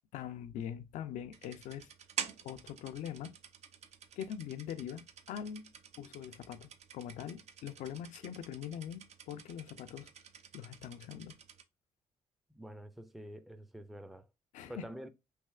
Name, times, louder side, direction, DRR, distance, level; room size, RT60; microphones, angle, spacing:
voice 1, 0.1-1.9 2.4-3.3 4.2-5.7 6.0-10.1 10.5-11.3 14.5-14.9, left 9 dB, 75° left, 0.4 m, -43 dB
sound 1, 1.3-11.6, right 8 dB, 60° right, 0.5 m, -48 dB
voice 2, 12.5-14.3 14.7-15.1, equal, ahead, 0.4 m, -47 dB
3.3 x 2.7 x 2.3 m
supercardioid pair, 60°, 13 cm